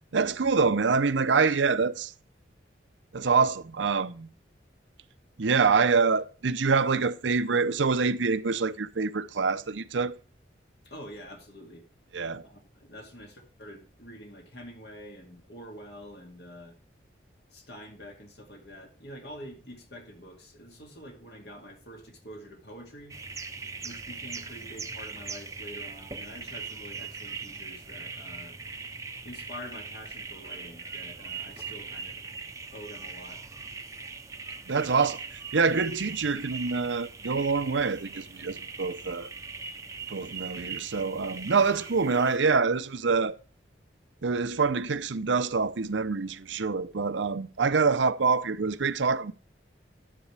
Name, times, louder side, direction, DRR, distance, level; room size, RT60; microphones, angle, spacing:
voice 1, 0.1-2.1 3.1-4.3 5.4-10.2 12.1-12.5 34.7-35.2 35.5-39.3 40.1-43.4 44.2-49.3, right 4 dB, 85° right, 0.7 m, -26 dB
voice 2, 10.8-11.9 12.4-16.8 17.5-23.2 23.8-28.6 29.2-32.2 32.7-33.4 47.6-47.7, equal, 65° left, 2.4 m, -46 dB
sound 1, 23.1-42.4, right 5 dB, 15° right, 0.7 m, -40 dB
11.5 x 9.8 x 3.4 m
head